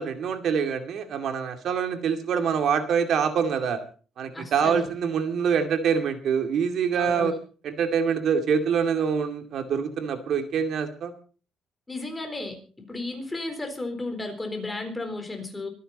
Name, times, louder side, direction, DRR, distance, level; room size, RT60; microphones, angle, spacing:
voice 1, 0.0-3.8 4.2-7.4 7.6-11.1, right 7 dB, 60° right, 6 dB, 2.4 m, -25 dB
voice 2, 4.3-4.9 6.9-7.3 11.9-15.7, left 2 dB, 10° left, 5 dB, 4.0 m, -34 dB
24.5 x 10.0 x 4.1 m, 0.39 s
cardioid pair, 135°, 0 cm